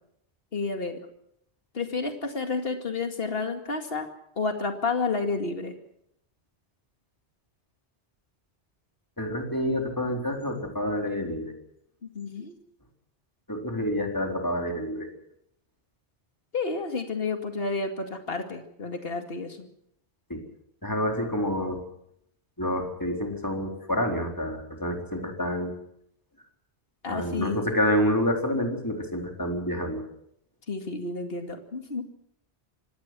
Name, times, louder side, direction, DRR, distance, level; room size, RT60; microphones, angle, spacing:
voice 1, 0.5-1.0 1.7-4.1 4.4-5.7 12.0-12.5 16.5-19.7 27.0-27.6 30.7-32.0, left 4 dB, 60° left, 5 dB, 2.5 m, -30 dB
voice 2, 9.2-11.5 13.5-15.1 20.3-20.4 20.8-21.8 22.6-25.7 27.1-30.0, equal, 15° left, 2 dB, 4.1 m, -28 dB
25.5 x 19.0 x 6.2 m, 0.74 s
omnidirectional pair, 1.1 m